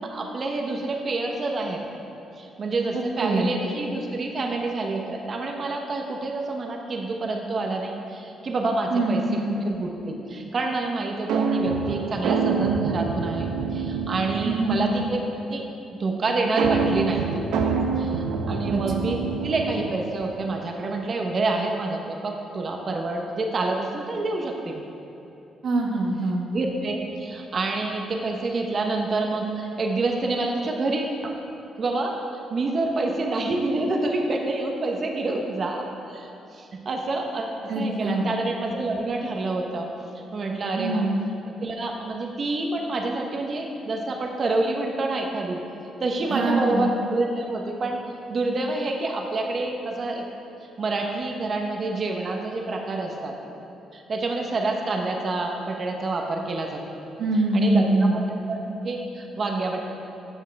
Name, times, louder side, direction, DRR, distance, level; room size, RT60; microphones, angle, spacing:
voice 1, 0.0-1.8 2.4-15.2 15.5-15.6 16.0-19.2 19.4-24.8 26.5-31.3 31.8-32.1 32.5-37.5 37.7-39.9 40.3-41.1 41.6-45.6 46.0-48.0 48.3-50.2 50.8-53.4 53.9-56.8 57.5-58.2 58.5-59.8, right 2 dB, 45° right, 2 dB, 1.0 m, -27 dB
voice 2, 2.9-3.5 8.9-9.6 14.4-14.9 18.7-18.8 25.6-26.4 37.7-38.3 40.8-41.2 46.3-46.9 57.2-58.2, right 2 dB, 60° right, 1 dB, 1.3 m, -23 dB
sound 1, 11.3-15.0 16.6-20.2, right 5 dB, 85° right, 0.6 m, -26 dB
11.5 x 7.3 x 3.5 m, 3.0 s
cardioid pair, 90°, 0 cm